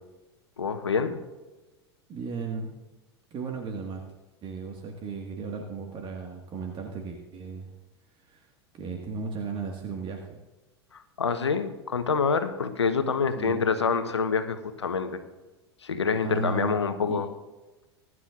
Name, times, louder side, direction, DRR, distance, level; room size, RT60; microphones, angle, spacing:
voice 1, 0.6-1.2 10.9-15.2 15.8-17.3, left 5 dB, 90° left, 9 dB, 1.0 m, -26 dB
voice 2, 2.1-2.7 3.3-4.0 4.4-7.7 8.2-8.5 8.7-10.4 13.4-13.6 16.2-16.8 17.0-17.2, right 4 dB, 35° right, 1 dB, 1.7 m, -35 dB
21.0 x 11.0 x 2.5 m, 1.1 s
hypercardioid pair, 90°, 14 cm